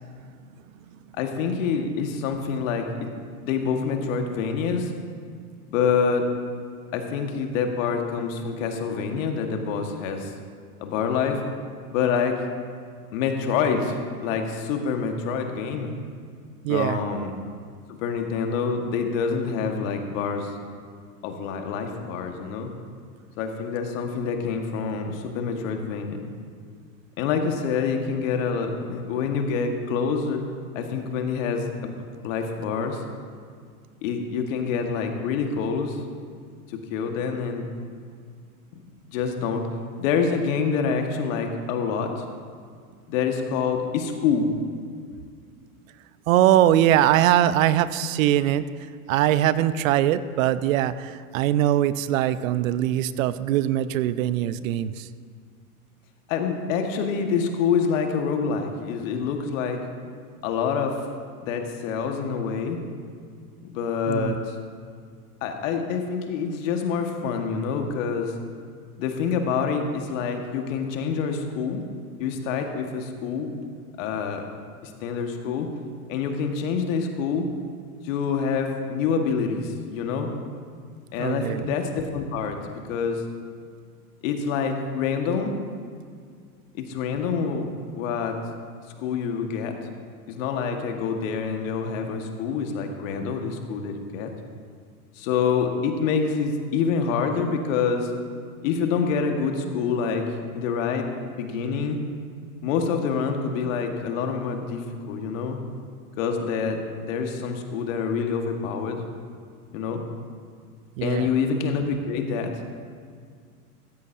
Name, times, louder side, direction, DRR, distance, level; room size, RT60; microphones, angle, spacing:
voice 1, 1.1-3.1 3.4-4.9 5.7-6.3 6.9-10.3 10.8-11.4 11.9-12.4 13.1-15.9 16.7-17.3 18.0-20.6 21.2-22.7 23.4-26.2 27.2-30.4 30.7-31.9 32.2-33.0 34.0-36.0 36.7-37.7 38.7-38.8 39.1-39.6 40.0-42.2 43.1-44.5 56.3-59.8 60.4-61.0 61.4-62.8 63.6-64.5 65.4-68.3 69.0-71.8 72.2-73.5 74.0-74.5 74.8-75.7 76.1-77.5 78.0-80.3 81.1-82.6 82.9-83.3 84.2-85.5 86.8-87.7 88.0-88.4 89.0-89.7 90.3-94.3 95.1-98.1 98.6-100.3 100.5-101.1 101.4-102.0 102.6-105.6 106.2-106.8 107.1-109.0 109.7-110.0 111.0-112.5, left 6 dB, 60° left, 4 dB, 1.7 m, -26 dB
voice 2, 16.6-17.0 46.3-48.7 49.1-55.1 64.1-64.4 81.2-81.7 111.0-111.3, right 12 dB, 60° right, 14 dB, 0.7 m, -22 dB
15.5 x 15.0 x 2.7 m, 2.1 s
hypercardioid pair, 105°, 45 cm